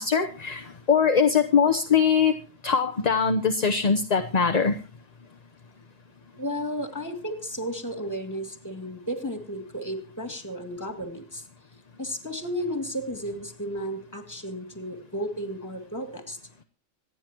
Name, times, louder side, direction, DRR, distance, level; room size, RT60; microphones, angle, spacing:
voice 1, 0.0-2.3 2.6-4.8, left 6 dB, 35° left, 6 dB, 0.9 m, -22 dB
voice 2, 6.4-11.4 12.0-16.4, equal, 15° left, 5 dB, 2.4 m, -33 dB
26.0 x 9.8 x 3.0 m, 0.37 s
omnidirectional pair, 1.3 m